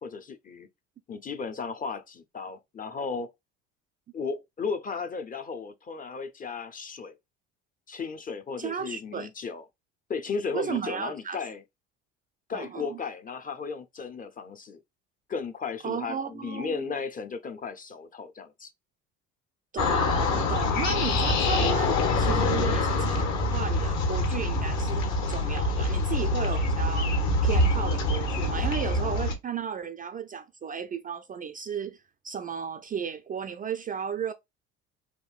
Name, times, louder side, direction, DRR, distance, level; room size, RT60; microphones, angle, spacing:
voice 1, 0.0-0.7 1.1-3.3 4.1-7.2 7.9-9.6 10.1-11.6 12.5-14.8 15.3-18.7, left 5 dB, 25° left, 0.5 m, -35 dB
voice 2, 8.6-9.3 10.5-11.4 12.5-13.0 15.8-16.9 19.7-27.1 27.4-34.3, right 7 dB, 30° right, 0.3 m, -34 dB
sound 1, 19.8-29.3, left 2 dB, 60° left, 1.1 m, -25 dB
3.6 x 2.6 x 2.3 m
supercardioid pair, 75°, 32 cm